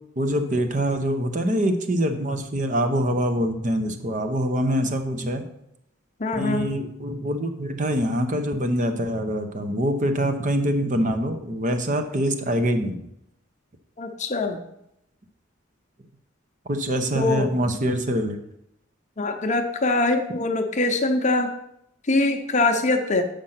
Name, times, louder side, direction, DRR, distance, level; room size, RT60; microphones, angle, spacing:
voice 1, 0.2-5.4 6.3-13.0 16.7-18.4, equal, 40° right, 7 dB, 0.8 m, -24 dB
voice 2, 6.2-6.7 14.0-14.6 17.1-17.5 19.2-21.5 22.1-23.2, left 2 dB, 35° left, 5 dB, 0.7 m, -23 dB
7.7 x 5.1 x 5.7 m, 0.80 s
head